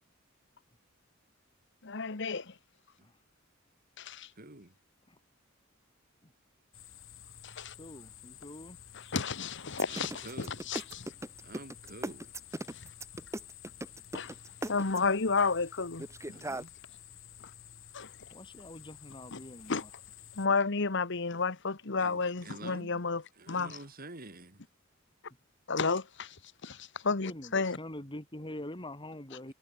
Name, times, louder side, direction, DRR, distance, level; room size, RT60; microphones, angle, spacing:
voice 1, 1.8-2.5 4.0-4.3 7.4-7.7 8.9-11.1 12.7-12.8 14.1-14.3 14.7-16.1 17.9-18.1 19.3-19.4 19.7-19.8 20.3-23.2 23.5-23.7 25.7-26.4 26.6-27.8, left 4 dB, 60° left, 1.4 m, -31 dB
voice 2, 4.3-4.7 9.9-10.6 11.4-12.3 16.2-16.7 22.0-23.0 23.3-24.7 29.5-29.6, right 2 dB, 45° right, 6.7 m, -48 dB
sound 1, 6.7-20.5, left 9 dB, 80° left, 7.2 m, -52 dB
voice 3, 7.8-8.8 18.3-19.9 27.2-29.5, left 1 dB, 25° left, 4.7 m, -45 dB
sound 2, 9.7-15.2 16.0-16.6, right 1 dB, 15° right, 1.5 m, -38 dB
head